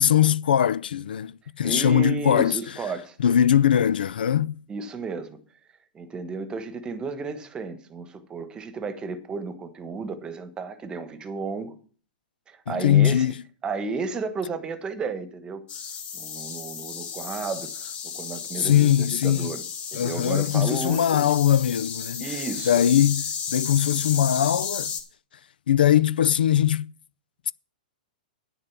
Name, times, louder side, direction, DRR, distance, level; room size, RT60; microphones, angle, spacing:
voice 1, 0.0-2.6 3.2-4.6 12.7-13.3 18.5-19.5 19.9-22.3 22.7-24.9 25.7-26.9, left 10 dB, 85° left, 0.4 m, -21 dB
voice 2, 1.6-3.2 4.7-5.4 5.9-11.8 12.5-13.3 13.6-15.6 16.1-19.6 19.9-21.3 22.2-22.8, right 4 dB, 15° right, 1.2 m, -33 dB
sound 1, 15.7-25.0, left 7 dB, 25° left, 2.1 m, -33 dB
10.5 x 6.7 x 7.3 m
hypercardioid pair, 140°, 5 cm